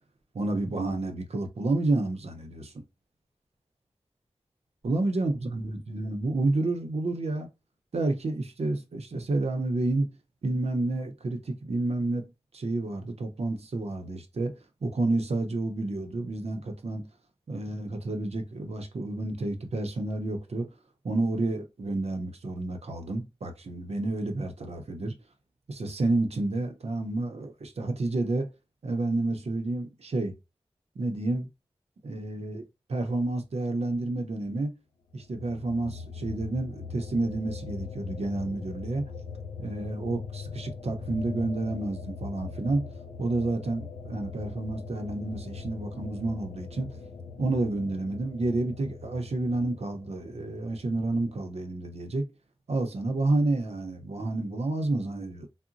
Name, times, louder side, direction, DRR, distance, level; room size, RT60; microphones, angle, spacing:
voice 1, 0.3-2.8 4.8-7.5 7.9-10.1 10.4-17.1 17.5-20.7 21.0-25.1 25.7-28.5 28.8-30.4 31.0-31.5 32.0-32.6 32.9-34.7 35.1-39.0 39.6-42.9 43.2-46.9 47.4-52.3 52.7-55.5, right 2 dB, 80° right, 0.6 m, -30 dB
sound 1, 35.3-51.4, left 5 dB, 85° left, 0.5 m, -41 dB
3.8 x 2.1 x 2.5 m
wide cardioid pair, 60°, 11 cm